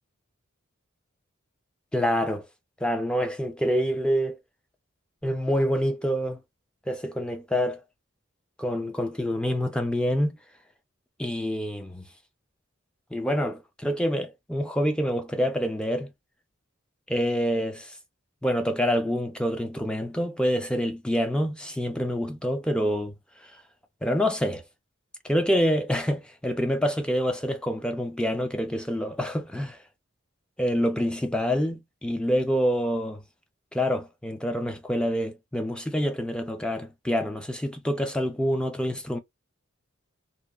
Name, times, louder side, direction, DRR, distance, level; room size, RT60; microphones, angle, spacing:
voice 1, 1.9-2.5 2.8-4.4 5.2-6.4 6.9-7.8 8.6-10.4 11.2-12.0 13.1-16.1 17.1-17.9 18.4-23.1 23.4-23.5 24.0-24.6 25.2-29.8 30.6-33.2 33.7-39.2, equal, 5° left, 0.4 m, -26 dB
2.7 x 2.2 x 2.2 m
head